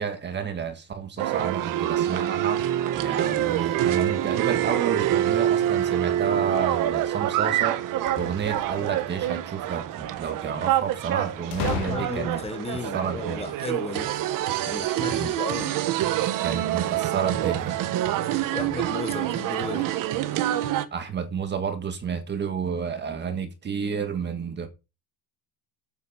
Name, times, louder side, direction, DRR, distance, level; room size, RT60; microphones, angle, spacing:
voice 1, 0.0-2.6 2.9-7.8 8.2-12.4 12.9-13.5 15.1-15.3 16.4-17.8 20.9-24.7, right 6 dB, 25° right, 1.7 m, -30 dB
sound 1, 1.2-20.8, right 12 dB, 50° right, 1.3 m, -26 dB
sound 2, 8.0-9.0 11.5-12.6, left 9 dB, 70° left, 2.7 m, -33 dB
voice 2, 11.8-14.1 14.6-15.8 18.5-19.9, left 4 dB, 15° left, 1.3 m, -34 dB
8.8 x 7.4 x 5.7 m
cardioid pair, 160°, 41 cm